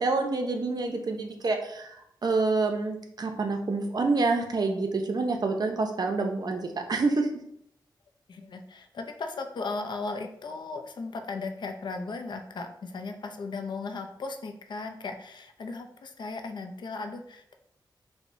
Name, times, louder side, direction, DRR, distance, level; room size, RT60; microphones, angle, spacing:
voice 1, 0.0-7.3, right 3 dB, 55° right, 4 dB, 0.6 m, -27 dB
voice 2, 8.3-17.6, left 3 dB, 70° left, 5 dB, 0.4 m, -36 dB
4.6 x 2.1 x 2.6 m, 0.72 s
cardioid pair, 65°, 8 cm